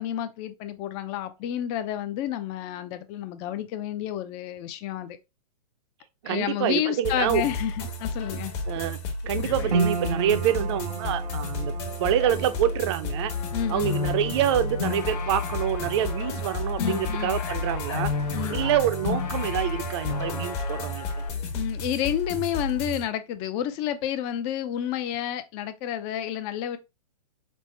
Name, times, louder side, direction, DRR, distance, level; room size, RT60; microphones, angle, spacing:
voice 1, 0.0-5.2 6.2-8.5 13.5-14.0 16.8-17.4 18.3-18.6 21.5-26.8, left 11 dB, 30° left, 0.5 m, -30 dB
voice 2, 6.2-7.5 8.7-9.0 9.2-13.3 13.7-18.1 18.5-21.1, right 11 dB, 45° right, 0.5 m, -26 dB
sound 1, 7.0-23.0, left 2 dB, 45° left, 1.2 m, -32 dB
sound 2, 9.7-22.1 22.4-23.3 23.8-23.9, right 4 dB, 75° right, 0.9 m, -36 dB
sound 3, 13.3-21.3, left 6 dB, 80° left, 1.0 m, -33 dB
5.3 x 2.1 x 3.2 m
hypercardioid pair, 135°, 20 cm